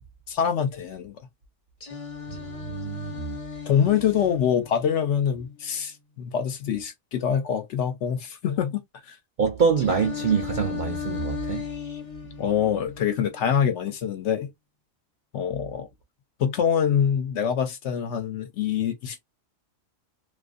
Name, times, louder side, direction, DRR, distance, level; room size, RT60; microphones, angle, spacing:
voice 1, 0.3-1.1 3.7-8.8 9.1-9.2 12.4-14.5 15.3-15.9 16.4-19.2, left 8 dB, 65° left, 0.8 m, -25 dB
Singing, 1.8-5.8 9.8-13.8, left 8 dB, 35° left, 0.6 m, -37 dB
voice 2, 2.3-3.4 9.4-11.6, right 6 dB, 65° right, 0.5 m, -25 dB
2.5 x 2.4 x 2.4 m
omnidirectional pair, 1.4 m